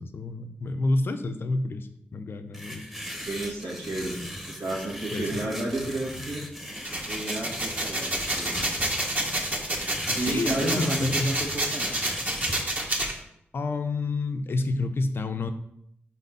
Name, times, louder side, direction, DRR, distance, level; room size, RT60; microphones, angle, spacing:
voice 1, 0.0-2.9 5.1-5.4 10.1-11.3 13.5-15.5, left 2 dB, 60° left, 8 dB, 0.6 m, -29 dB
sound 1, 2.5-12.6, equal, 5° right, 1.0 m, -38 dB
voice 2, 3.2-4.1 4.4-6.4 7.0-8.6 10.1-12.0, right 2 dB, 85° right, -5 dB, 2.0 m, -32 dB
sound 2, 6.8-13.1, right 1 dB, 35° right, 1.3 m, -28 dB
4.2 x 4.1 x 5.4 m, 0.76 s
cardioid pair, 70°, 4 cm